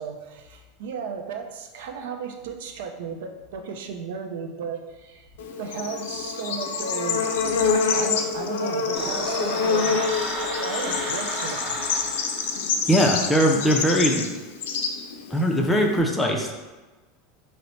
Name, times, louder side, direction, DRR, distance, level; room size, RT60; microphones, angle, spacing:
voice 1, 0.0-5.3 5.6-7.3 7.9-11.9, right 6 dB, 80° right, 5 dB, 0.5 m, -34 dB
Bird / Insect, 5.4-16.0, left 5 dB, 85° left, 0.4 m, -27 dB
sound 1, 8.9-12.9, right 1 dB, 25° right, 0.8 m, -33 dB
voice 2, 12.9-14.3 15.3-16.5, equal, 5° left, 1 dB, 0.5 m, -20 dB
4.2 x 2.1 x 4.0 m, 1.2 s
supercardioid pair, 140°, 0 cm